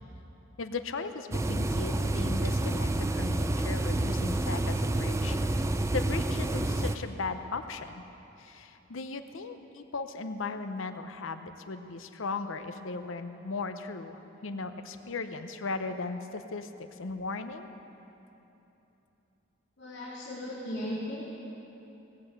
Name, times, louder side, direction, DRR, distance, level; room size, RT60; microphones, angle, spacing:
voice 1, 0.6-5.4 5.9-8.0 8.4-17.7, left 3 dB, 80° left, 9 dB, 0.7 m, -37 dB
sound 1, 1.3-7.0, right 1 dB, 15° right, 0.4 m, -29 dB
voice 2, 19.8-21.4, left 1 dB, 55° left, -10 dB, 2.8 m, -37 dB
18.0 x 7.7 x 8.0 m, 3.0 s
head